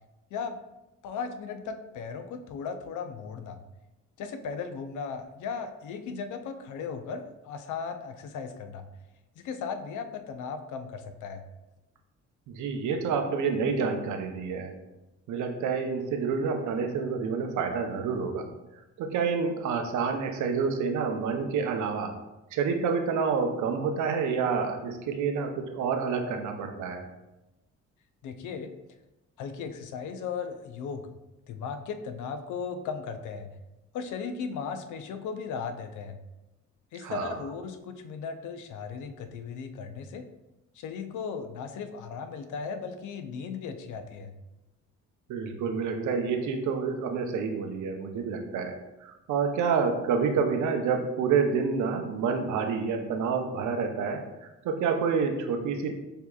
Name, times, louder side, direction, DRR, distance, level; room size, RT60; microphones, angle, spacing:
voice 1, 1.0-3.6 4.2-8.8 9.4-11.4 28.2-28.7 29.4-31.1 31.5-33.5 33.9-36.2 36.9-40.3 40.7-44.3, left 5 dB, 75° left, 9 dB, 0.5 m, -36 dB
voice 2, 12.5-14.7 15.3-18.5 19.0-22.1 22.5-27.1 37.0-37.4 45.3-48.7 49.0-55.9, right 5 dB, 75° right, 5 dB, 0.7 m, -28 dB
6.6 x 2.8 x 2.3 m, 0.99 s
cardioid pair, 90°, 30 cm